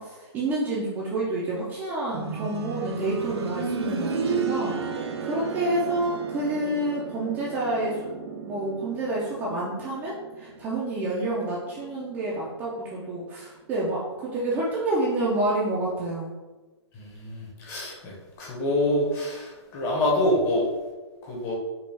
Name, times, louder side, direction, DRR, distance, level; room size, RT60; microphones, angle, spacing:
voice 1, 0.0-16.3, right 2 dB, 10° right, -6 dB, 0.4 m, -29 dB
sound 1, 2.1-12.9 14.3-14.4, right 5 dB, 65° right, 0.6 m, -34 dB
voice 2, 16.9-20.7 21.2-21.6, left 1 dB, 20° left, -2 dB, 0.7 m, -26 dB
5.2 x 2.2 x 3.3 m, 1.2 s
hypercardioid pair, 160°, 15 cm